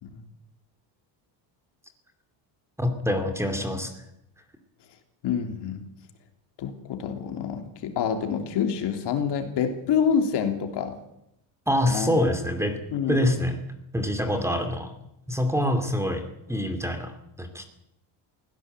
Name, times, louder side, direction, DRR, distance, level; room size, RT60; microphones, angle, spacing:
voice 1, 2.8-3.9 11.7-12.8 13.1-13.6 13.9-14.9 15.3-17.7, left 1 dB, 5° right, 7 dB, 2.5 m, -25 dB
voice 2, 5.2-5.8 6.6-11.0 11.9-12.1 12.9-13.3, left 7 dB, 55° left, 5 dB, 3.4 m, -27 dB
23.0 x 17.0 x 8.1 m, 0.81 s
cardioid pair, 145°, 48 cm